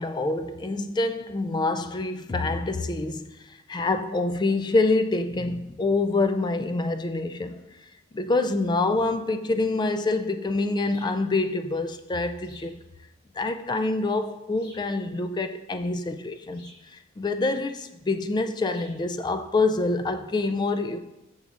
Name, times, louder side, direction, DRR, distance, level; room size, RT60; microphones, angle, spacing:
voice 1, 0.0-3.4 3.7-7.6 8.1-12.8 13.4-21.0, left 3 dB, 20° left, 0.3 m, -26 dB
sound 1, 10.9-11.2 12.4-12.8 14.6-14.9 16.5-16.9 18.7-19.0, left 1 dB, 50° left, 1.7 m, -52 dB
6.7 x 6.5 x 2.5 m
head